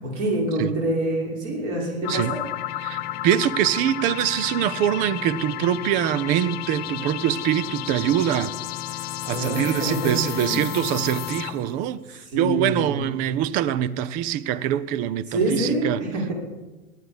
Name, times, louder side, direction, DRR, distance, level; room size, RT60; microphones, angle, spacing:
voice 1, 0.0-2.5 2.9-3.1 9.2-10.7 12.3-13.1 15.3-16.3, right 1 dB, 40° right, 5.9 m, -26 dB
sound 1, 2.0-11.7, left 13 dB, 35° left, 0.8 m, -32 dB
voice 2, 2.8-8.5 9.3-16.0, right 11 dB, 20° right, 0.4 m, -24 dB
18.5 x 12.0 x 5.3 m
figure-of-eight pair, 100°, 43 cm